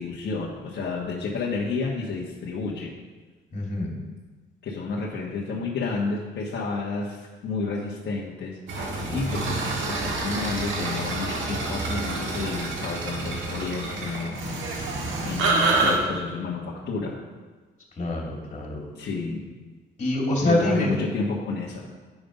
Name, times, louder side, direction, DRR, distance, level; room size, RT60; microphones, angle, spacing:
voice 1, 0.0-2.9 4.6-8.8 9.1-9.6 9.9-14.5 15.2-17.2 18.9-19.5 20.4-21.9, left 4 dB, 60° left, -3 dB, 1.3 m, -30 dB
voice 2, 3.5-3.9 18.0-18.8 20.0-20.9, left 1 dB, 35° left, -1 dB, 2.5 m, -25 dB
sound 1, 8.7-16.0, right 3 dB, 80° right, 1.5 m, -27 dB
8.7 x 5.3 x 5.3 m, 1.4 s
cardioid pair, 90°, 20 cm